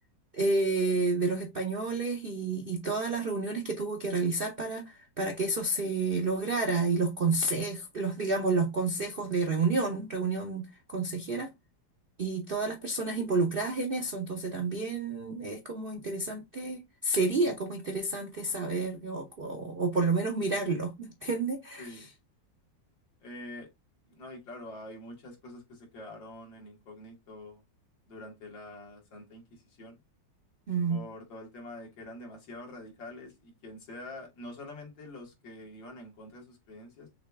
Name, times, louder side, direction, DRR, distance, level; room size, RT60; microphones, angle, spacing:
voice 1, 0.3-11.5 12.2-22.1 30.7-31.0, right 3 dB, 65° right, 0.5 m, -30 dB
voice 2, 23.2-23.7 24.1-27.6 28.1-30.0 30.9-37.1, left 1 dB, 85° left, 2.4 m, -46 dB
6.2 x 2.3 x 3.3 m
omnidirectional pair, 2.0 m